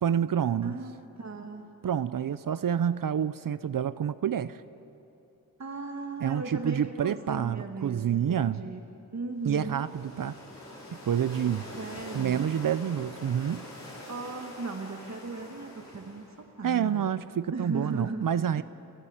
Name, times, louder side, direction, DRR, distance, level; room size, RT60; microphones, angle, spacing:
voice 1, 0.0-0.7 1.8-4.6 6.2-8.6 9.4-10.3 11.0-11.7 12.1-13.6 16.6-18.6, right 9 dB, 65° right, 15 dB, 0.6 m, -28 dB
voice 2, 0.6-1.6 5.6-8.8 9.1-9.9 11.8-12.4 14.1-16.2 16.6-17.1 17.5-18.2 18.5-18.6, right 3 dB, 50° right, 3 dB, 1.9 m, -37 dB
sound 1, 9.4-16.5, left 1 dB, 50° left, 6.2 m, -45 dB
29.5 x 13.5 x 8.9 m, 2.9 s
cardioid pair, 55°, 36 cm